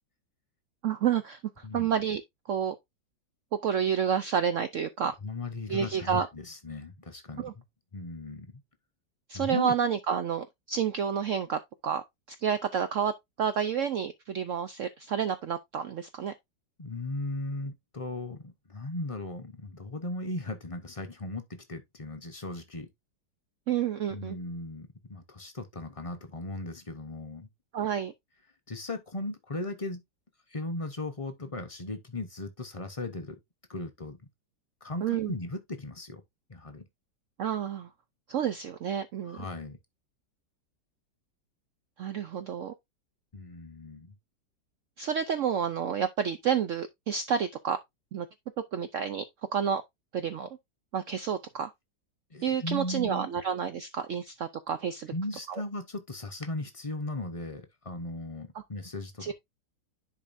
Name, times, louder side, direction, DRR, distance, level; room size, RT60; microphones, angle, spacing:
voice 1, 0.8-2.2 2.5-2.8 3.5-5.1 5.7-6.3 7.4-7.5 9.3-13.1 13.4-16.3 23.7-24.4 27.7-28.1 35.0-35.3 37.4-37.9 38.3-39.4 42.0-42.7 45.0-47.8 48.1-48.3 48.7-49.2 49.5-49.8 50.1-50.5 50.9-51.7 52.4-55.1 55.5-55.6 59.2-59.3, right 8 dB, 70° right, 0.7 m, -29 dB
voice 2, 5.2-7.6 7.9-8.6 9.3-9.7 16.8-22.9 24.1-27.5 28.7-30.0 30.5-33.4 33.7-34.2 34.8-36.2 36.5-36.9 39.3-39.8 43.3-44.1 52.3-53.3 55.1-59.3, left 2 dB, 30° left, 0.6 m, -37 dB
10.5 x 4.7 x 2.6 m
omnidirectional pair, 1.9 m